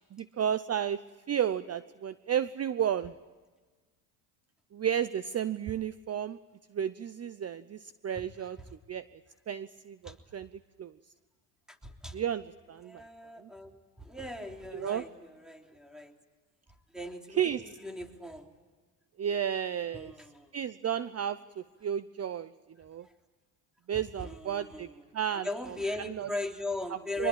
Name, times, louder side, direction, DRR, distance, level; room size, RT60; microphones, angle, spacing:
voice 1, 0.1-1.0 1.3-3.1 4.7-6.4 6.7-8.6 8.9-9.1 9.5-10.5 10.8-10.9 12.1-13.0 13.4-13.5 14.7-15.0 17.4-17.6 19.2-20.1 20.5-22.5 22.8-23.1 23.9-24.9 25.1-25.8 26.1-26.3 27.2-27.3, right 9 dB, 30° right, 15 dB, 0.7 m, -32 dB
voice 2, 11.7-12.2 12.8-16.1 16.9-18.5 19.9-20.5 23.0-23.1 23.9-25.1 25.3-27.3, left 2 dB, ahead, 3 dB, 3.4 m, -39 dB
24.0 x 21.5 x 8.8 m, 1.3 s
supercardioid pair, 85°, 48 cm